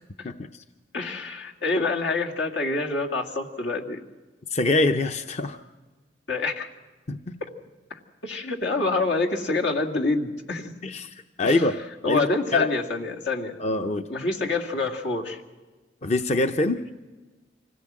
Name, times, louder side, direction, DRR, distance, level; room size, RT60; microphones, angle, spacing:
voice 1, 0.2-0.6 4.5-5.6 7.1-7.4 10.8-11.8 12.1-12.7 13.6-14.1 16.0-16.8, left 2 dB, 40° left, 7 dB, 0.6 m, -24 dB
voice 2, 0.9-4.0 6.3-6.7 7.9-10.7 11.4-11.7 12.0-13.5 14.1-15.4, left 3 dB, 80° left, 1 dB, 2.2 m, -27 dB
25.5 x 17.0 x 7.5 m, 1.3 s
head